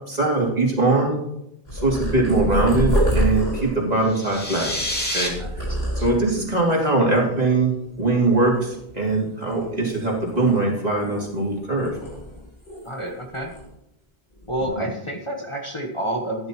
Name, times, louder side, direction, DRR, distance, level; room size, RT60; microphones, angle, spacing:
voice 1, 0.1-1.2 1.7-4.8 5.1-5.6 6.0-11.9 14.8-14.9, right 2 dB, 40° right, -3 dB, 2.9 m, -21 dB
Purr, 1.7-6.5 7.1-7.5 7.8-9.0 9.4-11.5 11.8-13.1 13.3-13.6 14.3-14.6, equal, 80° left, 4.8 m, -27 dB
sound 1, 4.0-5.3, left 1 dB, 10° left, 2.2 m, -27 dB
voice 2, 5.4-6.1 12.8-13.5 14.5-16.5, right 1 dB, 30° left, 1 dB, 1.2 m, -29 dB
15.0 x 10.5 x 3.0 m, 0.82 s
omnidirectional pair, 1.0 m